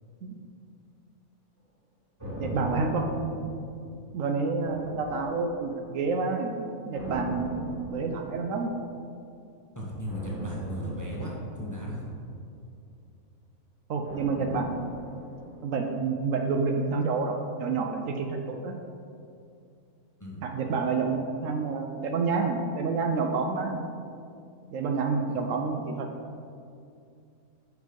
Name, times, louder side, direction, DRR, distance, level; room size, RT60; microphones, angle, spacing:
sound 1, 2.2-4.1 4.6-5.9 6.9-8.7 10.0-12.4 14.0-16.2 16.5-16.6, right 1 dB, 10° right, 1.5 m, -40 dB
voice 1, 2.4-3.5 4.1-6.5 6.9-8.7 13.9-14.9 15.6-18.7 20.4-23.8 24.7-26.1, right 4 dB, 70° right, 4 dB, 0.9 m, -29 dB
voice 2, 9.7-12.0 20.2-20.4 25.3-25.4, equal, 15° left, -4 dB, 0.8 m, -36 dB
6.2 x 5.4 x 5.1 m, 2.4 s
omnidirectional pair, 1.5 m